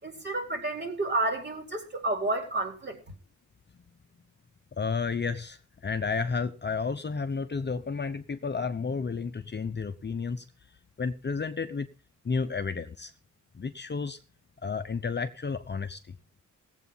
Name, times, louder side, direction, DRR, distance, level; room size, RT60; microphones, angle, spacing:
voice 1, 0.0-3.0, right 2 dB, 35° right, 4.2 m, -30 dB
voice 2, 4.8-10.5 11.0-11.9 12.2-13.1 13.5-14.2 14.6-16.0, left 5 dB, 35° left, 0.8 m, -31 dB
18.0 x 8.1 x 5.6 m
wide cardioid pair, 150°, 32 cm